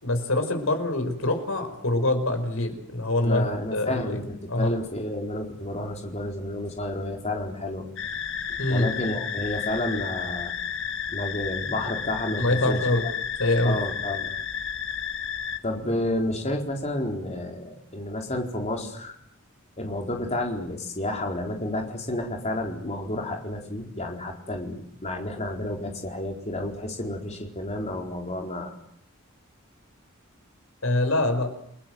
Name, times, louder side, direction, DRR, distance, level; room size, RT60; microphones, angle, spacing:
voice 1, 0.0-3.4 3.7-4.2 4.5-4.8 8.6-8.9 12.4-13.1 13.4-13.8 30.8-31.5, left 1 dB, 80° left, 7 dB, 5.4 m, -24 dB
voice 2, 3.2-7.9 8.7-10.5 11.1-12.9 13.6-14.3 15.6-19.2 19.8-28.7, left 1 dB, 35° left, 2 dB, 4.4 m, -30 dB
sound 1, 8.0-15.6, left 8 dB, 65° left, 1.7 m, -32 dB
30.0 x 20.5 x 7.9 m, 0.68 s
head